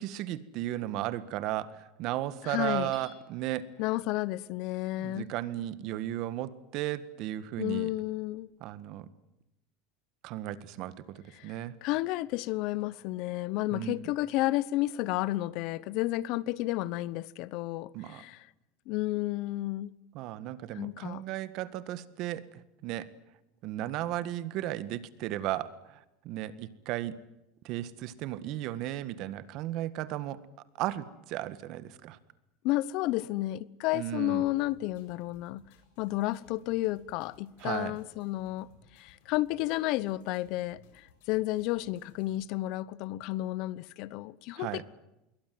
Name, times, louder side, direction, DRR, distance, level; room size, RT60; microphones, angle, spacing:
voice 1, 0.0-3.7 5.0-7.9 8.6-9.1 10.2-10.9 11.4-11.7 13.7-14.0 17.9-18.2 20.1-23.1 23.6-27.2 27.6-30.4 30.8-32.2 33.9-34.4 37.6-37.9 44.5-44.8, right 14 dB, 50° right, 1.7 m, -35 dB
voice 2, 2.4-2.9 3.8-5.2 7.6-8.5 11.3-11.5 11.8-18.5 18.9-19.9 20.7-21.2 32.6-35.6 36.0-38.7 38.9-44.8, left 17 dB, 55° left, 0.9 m, -32 dB
Hammer / Chink clink, 2.9-3.7, left 7 dB, 30° left, 7.2 m, -55 dB
sound 1, 34.5-42.5, left 5 dB, 75° left, 7.9 m, -62 dB
27.0 x 22.5 x 7.8 m
supercardioid pair, 145°, 0 cm